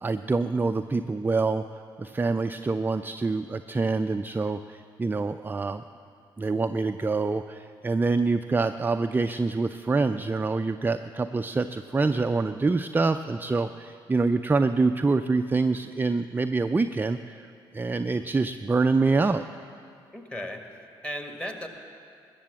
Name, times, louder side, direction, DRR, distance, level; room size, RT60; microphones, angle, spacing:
voice 1, 0.0-1.6 2.0-5.8 6.4-19.4, right 3 dB, 15° right, 9 dB, 0.4 m, -26 dB
voice 2, 20.1-21.7, equal, 10° left, 4 dB, 1.7 m, -37 dB
20.5 x 6.9 x 7.3 m, 2.3 s
figure-of-eight pair, 45°, 12 cm